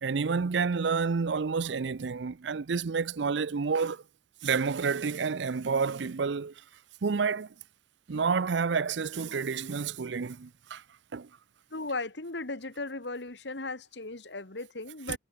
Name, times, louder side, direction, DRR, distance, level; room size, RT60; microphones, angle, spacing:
voice 1, 0.0-4.0 4.4-6.5 7.0-7.5 8.1-10.8 11.1-11.3 15.1-15.2, right 5 dB, 75° right, 0.5 m, -29 dB
voice 2, 11.7-15.2, left 3 dB, 70° left, 1.9 m, -37 dB
head